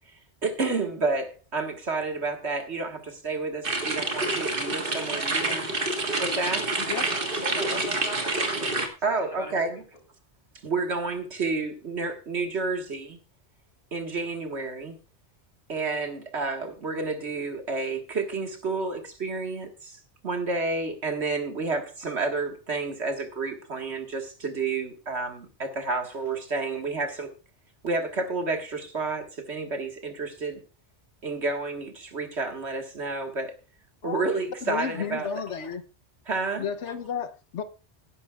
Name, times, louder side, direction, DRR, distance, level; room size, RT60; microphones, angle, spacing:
voice 1, 0.4-5.7 6.2-6.7 7.0-7.1 9.0-9.8 10.6-13.2 13.9-15.0 15.7-27.3 27.8-30.6 31.2-33.6 34.0-35.4 36.3-36.9, right 3 dB, 75° right, 2.0 m, -30 dB
sound 1, 3.6-8.9, right 2 dB, 55° right, 1.8 m, -28 dB
voice 2, 4.6-5.1 7.2-8.7 9.2-9.5, left 1 dB, 30° left, 3.1 m, -40 dB
voice 3, 34.7-35.8 36.6-37.6, left 7 dB, 90° left, 1.2 m, -32 dB
17.5 x 10.5 x 2.4 m
omnidirectional pair, 1.1 m